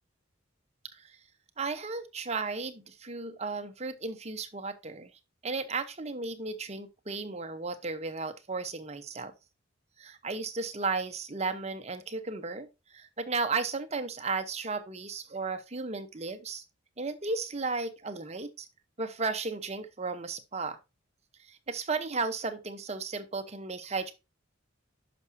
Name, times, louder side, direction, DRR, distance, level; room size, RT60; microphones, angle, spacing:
voice 1, 1.6-5.1 5.4-9.3 10.0-16.6 17.0-18.7 19.0-20.8 21.4-24.1, right 4 dB, 35° right, 0.9 m, -34 dB
10.5 x 6.0 x 2.7 m
head